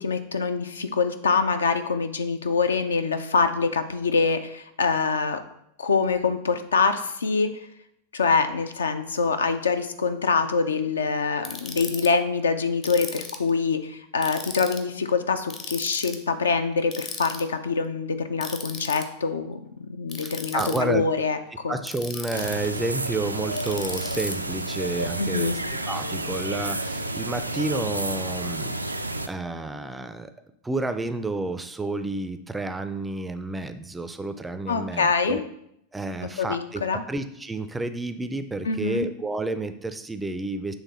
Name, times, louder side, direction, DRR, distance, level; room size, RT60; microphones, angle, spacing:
voice 1, 0.0-5.4 5.8-7.5 8.1-21.4 21.6-21.8 25.2-25.6 34.7-35.4 36.2-37.0 38.6-39.1, left 4 dB, 70° left, 9 dB, 0.5 m, -25 dB
Ratchet pawl, 11.4-12.1 12.8-13.5 14.2-14.8 15.5-16.2 16.9-17.4 18.4-19.0 20.1-20.8 21.8-22.7 23.6-24.3, left 5 dB, 30° left, 0.7 m, -36 dB
voice 2, 20.2-21.0 21.7-25.6 25.9-29.0 29.2-30.3 30.6-35.4 35.9-40.7, right 2 dB, 10° right, 10 dB, 0.4 m, -30 dB
sound 1, 22.3-29.3, right 1 dB, 85° right, 0.3 m, -30 dB
7.2 x 3.4 x 4.1 m, 0.75 s
figure-of-eight pair, 90°, 0 cm